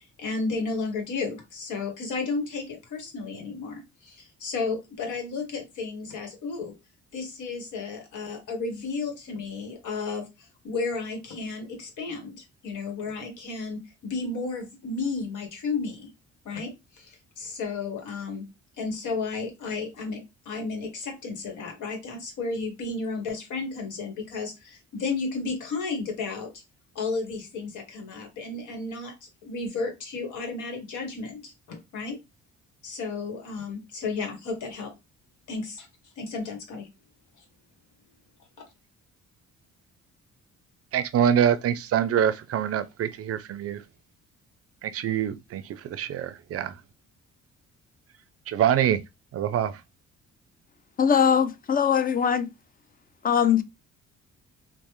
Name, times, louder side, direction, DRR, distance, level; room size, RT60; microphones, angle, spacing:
voice 1, 0.0-6.7 7.1-16.1 16.4-18.4 18.8-26.6 26.9-32.2 32.8-34.9 35.5-35.9 36.2-36.9, left 4 dB, 80° left, 1.2 m, -33 dB
voice 2, 40.9-43.8 44.8-45.6 45.9-46.7 48.5-49.0 49.3-49.8, right 9 dB, 50° right, 0.4 m, -25 dB
voice 3, 51.0-52.5 53.2-53.6, left 8 dB, 30° left, 0.4 m, -21 dB
3.1 x 2.1 x 3.0 m
cardioid pair, 90°, 30 cm